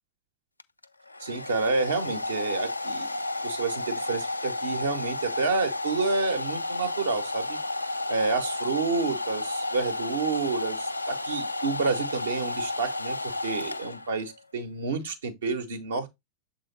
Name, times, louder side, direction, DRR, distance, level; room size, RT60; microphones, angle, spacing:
Domestic sounds home sounds, 0.6-14.3, left 2 dB, 85° left, 0.4 m, -32 dB
voice 1, 1.2-3.1 3.4-7.6 8.1-16.1, right 4 dB, 65° right, 1.4 m, -29 dB
7.4 x 3.7 x 3.9 m
figure-of-eight pair, 90°, 0 cm